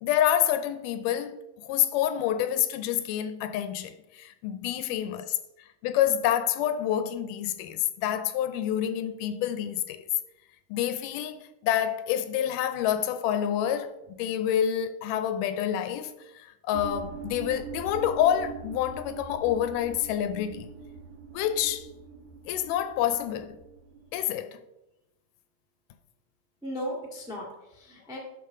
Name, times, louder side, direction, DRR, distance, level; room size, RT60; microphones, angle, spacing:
voice 1, 0.0-5.4 5.8-10.1 10.7-20.7 21.3-21.9 22.5-23.6 24.1-24.6, left 10 dB, 80° left, 2.1 m, -28 dB
sound 1, 16.7-24.3, right 5 dB, 75° right, 2.2 m, -43 dB
voice 2, 26.6-28.2, equal, 5° right, 0.6 m, -37 dB
12.0 x 5.0 x 3.7 m
omnidirectional pair, 3.8 m